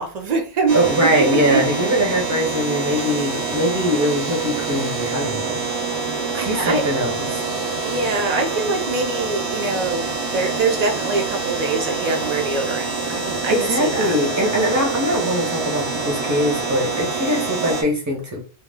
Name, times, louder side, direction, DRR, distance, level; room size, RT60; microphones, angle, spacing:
voice 1, 0.0-1.8 2.1-2.2 6.3-6.9 7.8-14.2, right 3 dB, 50° right, 0.5 m, -24 dB
voice 2, 0.7-5.6 6.3-7.3 13.5-18.4, equal, 15° right, 0.8 m, -21 dB
sound 1, 0.7-17.8, right 4 dB, 90° right, 1.0 m, -26 dB
2.2 x 2.2 x 3.4 m
omnidirectional pair, 1.1 m